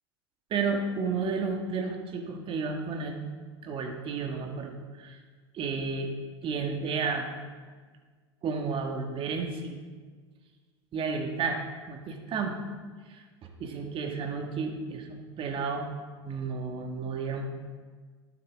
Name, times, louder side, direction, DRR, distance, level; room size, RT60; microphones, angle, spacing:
voice 1, 0.5-3.2 3.6-5.2 5.5-6.1 6.4-7.3 8.4-9.8 10.9-12.6 13.1-15.9 16.2-17.5, right 4 dB, 40° right, 3 dB, 1.9 m, -32 dB
19.5 x 9.7 x 3.7 m, 1.5 s
figure-of-eight pair, 80°, 14 cm